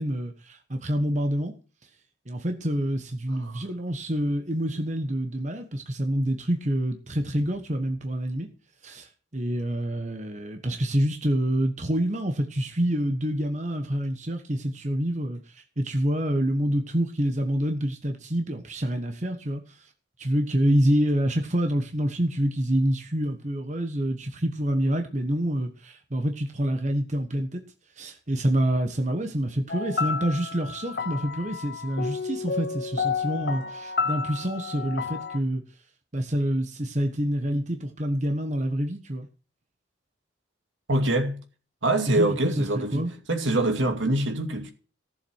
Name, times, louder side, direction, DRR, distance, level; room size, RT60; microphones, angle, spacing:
voice 1, 0.0-1.5 2.3-8.5 8.8-19.9 20.2-27.6 28.0-35.6 36.1-39.3 42.1-43.1, equal, 40° right, 1.2 m, -27 dB
sound 1, 29.7-35.4, left 5 dB, 55° left, 0.8 m, -31 dB
voice 2, 40.9-41.4 41.8-44.7, right 1 dB, 80° right, 2.4 m, -25 dB
15.0 x 7.4 x 6.4 m
head